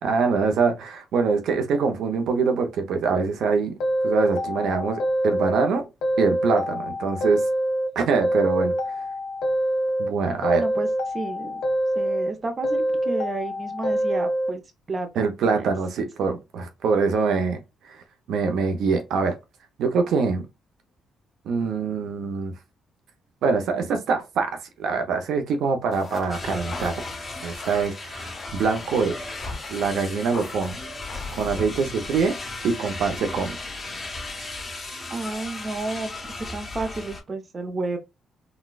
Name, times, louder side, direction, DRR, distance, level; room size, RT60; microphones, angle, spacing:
voice 1, 0.0-3.7 4.0-5.9 6.2-7.5 7.9-8.7 10.0-10.6 15.2-17.6 17.8-18.0 18.3-19.4 19.8-20.5 21.4-22.5 23.4-24.5 24.8-27.0 27.4-29.2 29.7-30.8 31.4-32.4 32.6-33.5, right 5 dB, 75° right, 0.7 m, -24 dB
sound 1, 3.8-5.7 6.0-7.9 8.2-10.1 10.4-12.3 12.6-14.5, equal, 75° left, 0.8 m, -25 dB
voice 2, 10.5-11.6 11.9-14.6 14.9-15.7 35.1-38.0, right 3 dB, 35° right, 0.6 m, -32 dB
sound 2, 25.9-31.5, left 4 dB, 40° left, 1.3 m, -43 dB
sound 3, 26.3-37.2, left 2 dB, 15° left, 1.6 m, -35 dB
4.0 x 2.2 x 2.3 m
cardioid pair, 90°, 0 cm